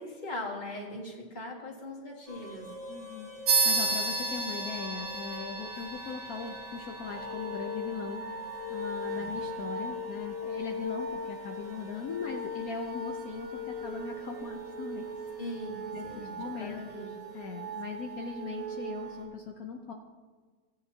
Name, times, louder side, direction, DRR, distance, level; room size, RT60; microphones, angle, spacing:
voice 1, 0.0-2.7 9.1-9.3 15.4-17.1, left 1 dB, 30° left, -3 dB, 2.1 m, -40 dB
sound 1, 2.3-19.2, left 1 dB, 90° right, 2.8 m, -40 dB
voice 2, 2.9-8.2 8.7-15.1 15.9-16.8 17.3-19.9, left 5 dB, 65° left, 3 dB, 1.2 m, -39 dB
sound 2, 3.5-13.4, right 3 dB, 60° right, 1.5 m, -34 dB
16.5 x 9.4 x 2.8 m, 1.4 s
omnidirectional pair, 1.8 m